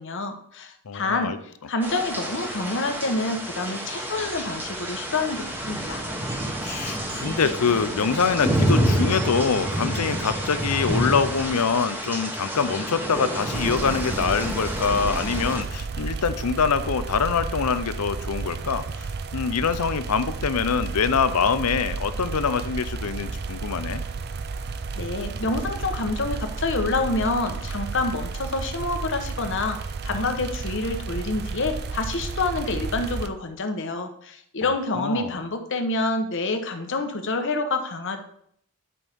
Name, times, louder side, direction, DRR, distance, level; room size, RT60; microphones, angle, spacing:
voice 1, 0.0-1.3 1.7-6.0 24.9-38.2, left 3 dB, 60° left, 6 dB, 1.1 m, -27 dB
voice 2, 0.9-1.4 6.6-18.9 19.3-24.1 34.6-35.4, left 5 dB, 90° left, 12 dB, 0.6 m, -24 dB
sound 1, 1.8-15.6, right 1 dB, 10° right, 1.2 m, -28 dB
sound 2, 4.0-11.5, right 2 dB, 75° right, 3.6 m, -43 dB
sound 3, 13.5-33.3, right 4 dB, 45° right, 0.5 m, -32 dB
11.0 x 5.5 x 3.6 m, 0.67 s
head